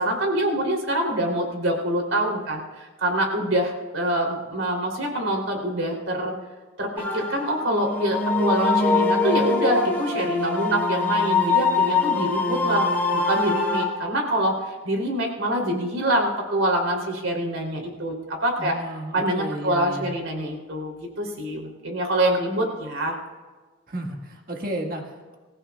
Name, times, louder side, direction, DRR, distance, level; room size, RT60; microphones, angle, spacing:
voice 1, 0.0-6.3 6.8-18.8 19.1-23.2, right 1 dB, 80° right, 0 dB, 3.4 m, -25 dB
sound 1, 7.0-13.8, left 3 dB, 10° left, 5.3 m, -23 dB
voice 2, 18.6-20.1 23.9-25.4, right 1 dB, 45° right, 2 dB, 1.8 m, -33 dB
27.0 x 15.0 x 2.4 m, 1.3 s
head